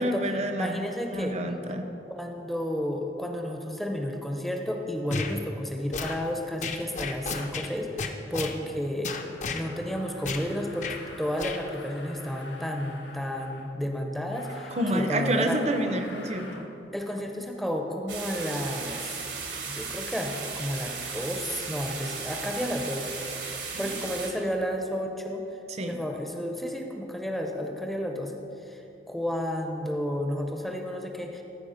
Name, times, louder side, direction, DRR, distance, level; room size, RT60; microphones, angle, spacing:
voice 1, 0.0-0.8 1.1-1.9 14.8-16.7 23.6-24.0 25.7-26.0, right 1 dB, 40° right, 6 dB, 0.7 m, -28 dB
voice 2, 0.5-1.4 2.1-9.1 9.5-15.6 16.9-19.2 19.7-23.2 23.8-25.4 25.9-28.3 28.7-28.8 29.1-31.4, equal, ahead, 2 dB, 0.6 m, -32 dB
multi punch, 5.1-5.3 5.9-6.2 6.6-7.7 8.0-8.6 9.0-9.6 10.2-10.5 10.8-11.0 11.4-11.6, left 4 dB, 45° left, 0.6 m, -33 dB
sound 1, 9.1-13.7 14.3-16.7, left 3 dB, 85° left, 1.0 m, -47 dB
sound 2, 18.1-24.3, right 5 dB, 80° right, 1.5 m, -36 dB
14.5 x 4.8 x 5.0 m, 3.0 s
head